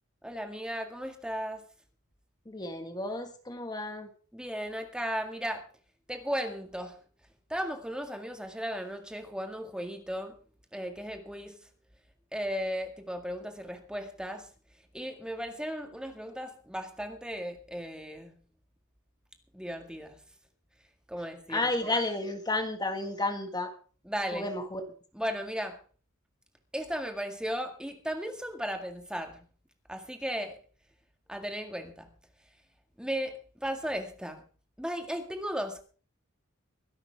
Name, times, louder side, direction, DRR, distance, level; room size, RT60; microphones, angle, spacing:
voice 1, 0.2-1.6 4.3-5.7 6.1-7.0 7.5-10.4 10.7-11.6 12.3-14.5 14.9-18.3 19.5-20.2 21.1-21.9 24.1-24.5 25.1-25.8 26.7-29.4 29.9-30.6 31.3-32.1 33.0-34.4 34.8-35.8, equal, 5° right, 4 dB, 2.0 m, -36 dB
voice 2, 2.5-4.1 21.5-23.7 24.3-24.8, left 2 dB, 20° left, 5 dB, 1.8 m, -32 dB
24.0 x 11.5 x 3.6 m, 0.40 s
head